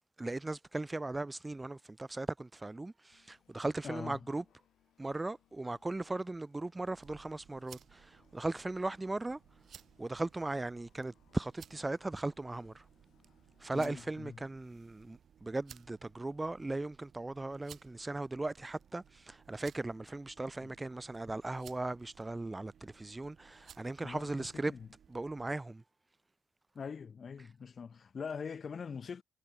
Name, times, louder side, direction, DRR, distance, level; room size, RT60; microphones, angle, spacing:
voice 1, 0.2-4.4 5.0-9.4 10.0-12.8 13.6-24.7 25.1-25.8, right 2 dB, 15° right, 0.5 m, -38 dB
sound 1, 3.1-14.8, left 12 dB, 80° left, 5.3 m, -73 dB
voice 2, 3.8-4.3 13.7-14.4 24.0-24.9 26.7-29.2, left 6 dB, 45° left, 0.7 m, -43 dB
sound 2, 6.8-25.6, right 8 dB, 60° right, 2.9 m, -60 dB
cardioid pair, 90°, 0 cm